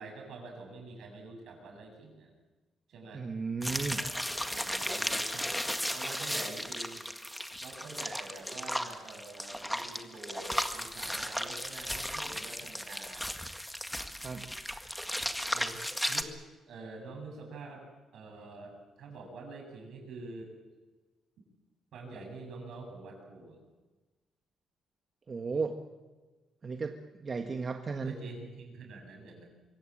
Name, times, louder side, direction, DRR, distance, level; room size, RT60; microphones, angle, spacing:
voice 1, 0.0-2.3 2.9-3.2 3.8-5.5 5.9-7.1 7.6-13.3 15.5-15.8 16.1-16.3 16.7-17.8 18.1-20.5 21.9-23.6 28.0-29.5, right 3 dB, 70° right, 2 dB, 7.7 m, -46 dB
voice 2, 3.1-4.0 14.2-14.4 25.3-25.7 26.6-28.1, right 4 dB, 35° right, 5 dB, 1.5 m, -34 dB
sound 1, 3.6-16.2, equal, 5° left, 1.8 m, -35 dB
24.5 x 17.0 x 8.7 m, 1.2 s
cardioid pair, 90°, 0 cm